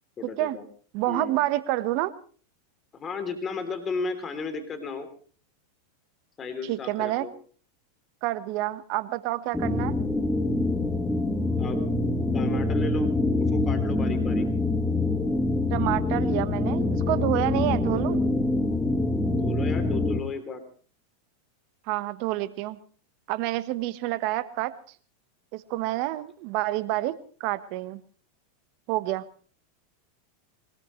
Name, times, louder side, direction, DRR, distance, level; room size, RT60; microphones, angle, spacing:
voice 1, 0.2-0.6 1.1-1.4 2.9-5.1 6.4-7.3 11.6-11.8 12.3-13.1 13.4-14.5 19.3-20.6, left 4 dB, 25° left, 7 dB, 3.2 m, -34 dB
voice 2, 0.9-2.1 6.6-7.3 8.2-10.0 15.7-18.2 21.9-22.8 23.3-24.8 25.5-28.0 28.9-29.3, right 16 dB, 55° right, 13 dB, 1.2 m, -28 dB
sound 1, 9.5-20.2, left 2 dB, 10° left, 1.7 m, -25 dB
22.5 x 19.5 x 3.2 m, 0.43 s
hypercardioid pair, 105°, 0 cm